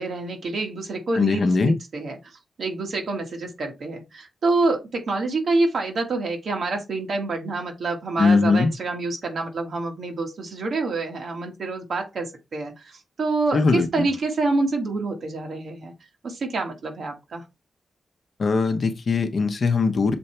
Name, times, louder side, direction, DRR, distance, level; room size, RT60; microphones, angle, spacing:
voice 1, 0.0-15.9 16.2-17.4, right 3 dB, 55° right, 1.7 m, -27 dB
voice 2, 1.1-1.7 8.2-8.7 13.5-14.1 18.4-20.2, left 4 dB, 45° left, 0.9 m, -20 dB
6.9 x 4.2 x 3.3 m
wide cardioid pair, 175°, 0 cm